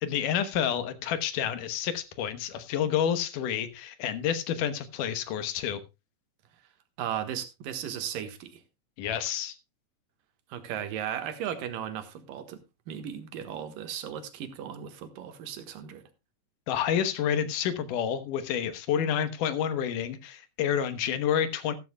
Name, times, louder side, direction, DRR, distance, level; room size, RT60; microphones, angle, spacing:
voice 1, 0.0-5.8 9.0-9.6 16.7-21.7, left 9 dB, 75° left, 2.6 m, -29 dB
voice 2, 7.0-8.6 10.5-16.0, right 9 dB, 85° right, 3.1 m, -36 dB
14.5 x 13.5 x 2.3 m
omnidirectional pair, 3.8 m